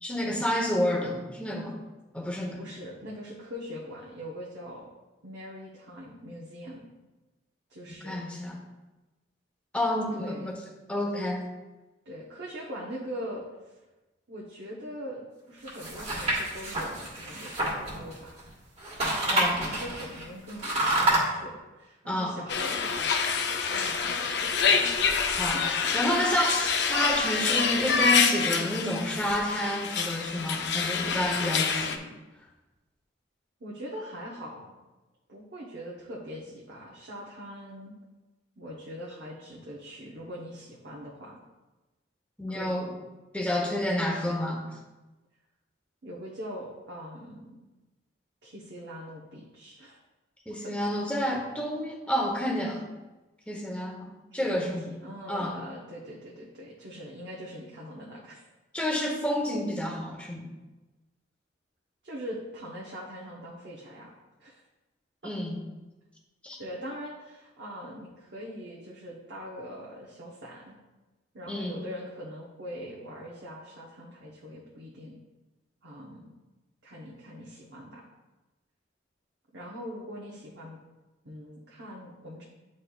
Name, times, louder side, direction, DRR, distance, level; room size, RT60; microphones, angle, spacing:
voice 1, 0.0-1.7 2.1-2.6 8.0-8.5 9.7-10.6 10.9-11.4 19.3-19.7 22.1-22.3 25.4-25.6 25.9-32.0 42.4-42.9 43.3-44.6 50.5-52.8 53.5-54.1 54.3-54.8 55.3-55.6 58.7-60.4 65.2-65.6 66.4-66.6 71.5-71.8, left 1 dB, 5° left, -1 dB, 0.9 m, -29 dB
voice 2, 2.6-4.9 5.2-6.9 7.7-8.2 10.1-10.5 12.0-13.8 14.3-18.4 19.2-24.9 25.5-25.6 33.6-34.7 35.3-37.9 38.6-41.4 42.5-42.8 46.0-47.6 48.4-50.0 50.6-50.7 54.4-58.4 62.0-64.1 64.4-64.6 65.2-65.3 66.6-70.7 71.3-75.2 75.8-76.3 76.8-78.1 79.5-80.8 81.2-82.4, equal, 60° right, -5 dB, 0.9 m, -42 dB
sound 1, 15.7-18.5 18.8-21.2, right 1 dB, 35° right, 1.5 m, -28 dB
sound 2, 22.5-32.0, left 5 dB, 65° left, 0.5 m, -27 dB
9.3 x 4.3 x 2.4 m, 1.1 s
head